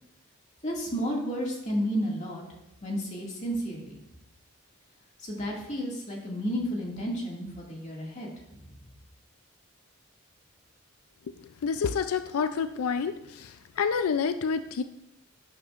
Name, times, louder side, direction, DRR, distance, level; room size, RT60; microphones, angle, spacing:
voice 1, 0.6-2.4 2.8-4.0 5.2-8.3 8.5-8.6, equal, 35° left, -2 dB, 2.1 m, -32 dB
voice 2, 11.6-14.8, left 6 dB, 90° left, 10 dB, 0.4 m, -28 dB
11.5 x 8.9 x 2.5 m, 0.89 s
head